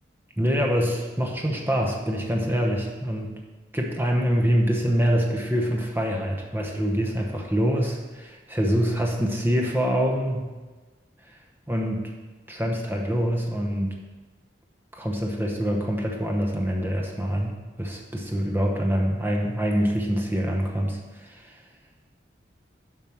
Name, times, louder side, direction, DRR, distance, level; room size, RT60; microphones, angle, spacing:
voice 1, 0.4-3.4 3.7-10.5 11.7-12.1 12.5-13.9 14.9-17.5 17.8-21.6, equal, 10° right, 0 dB, 0.9 m, -25 dB
7.2 x 4.6 x 5.8 m, 1.3 s
head